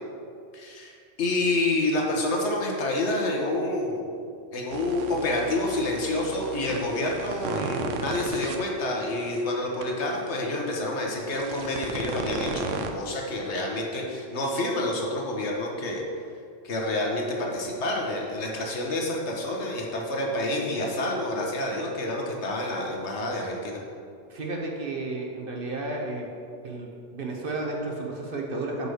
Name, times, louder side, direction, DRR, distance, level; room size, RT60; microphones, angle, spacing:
voice 1, 0.5-16.0 16.6-23.8, left 2 dB, 65° left, -1 dB, 1.3 m, -28 dB
sound 1, 4.7-8.6 9.2-9.4 9.8-9.9 11.1-12.9, right 5 dB, 90° right, 1.0 m, -35 dB
voice 2, 24.3-26.3 26.6-28.9, right 2 dB, 50° right, 0 dB, 1.0 m, -32 dB
5.3 x 4.8 x 6.4 m, 2.4 s
omnidirectional pair, 1.3 m